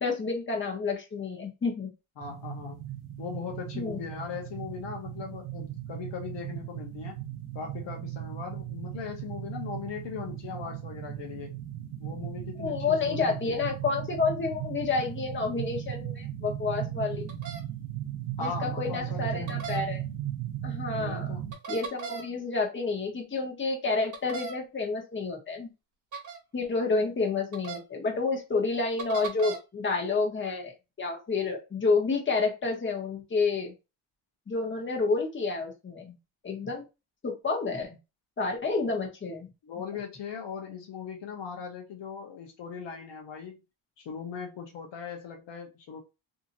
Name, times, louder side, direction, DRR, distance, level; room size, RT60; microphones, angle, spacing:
voice 1, 0.0-1.9 3.7-4.0 12.6-17.3 18.4-20.0 20.6-21.3 21.7-25.7 26.5-33.7 34.5-36.2 36.4-36.8 37.2-38.0 38.4-39.5, left 4 dB, 25° left, 1.0 m, -29 dB
voice 2, 2.2-2.8 3.2-7.2 7.5-11.5 12.0-13.7 18.4-19.6 20.9-21.4 39.6-43.6 44.0-46.0, left 6 dB, 60° left, 0.8 m, -39 dB
sound 1, 2.2-21.5, right 12 dB, 80° right, 0.8 m, -37 dB
sound 2, 17.3-17.6 19.5-19.8 21.5-22.3 24.1-24.6 26.1-26.4 27.5-27.8 29.0-29.6, right 6 dB, 40° right, 1.0 m, -37 dB
2.8 x 2.6 x 2.5 m
cardioid pair, 105°, 49 cm